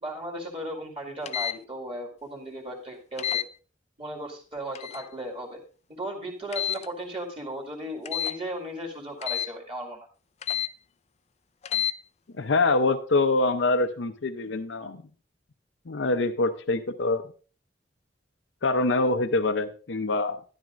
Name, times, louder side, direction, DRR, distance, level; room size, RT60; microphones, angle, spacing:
voice 1, 0.0-3.4 4.0-5.6 5.9-10.1, right 1 dB, 30° right, 0 dB, 2.1 m, -36 dB
sound 1, 1.3-1.6 3.2-3.5 4.7-5.1 6.5-6.9 8.1-8.4 9.2-9.5 10.4-10.7 11.6-11.9, left 10 dB, 35° left, 0.4 m, -29 dB
voice 2, 12.4-15.0 15.9-17.2 18.6-20.4, left 3 dB, 75° left, 9 dB, 0.6 m, -25 dB
12.5 x 11.0 x 2.5 m, 0.39 s
head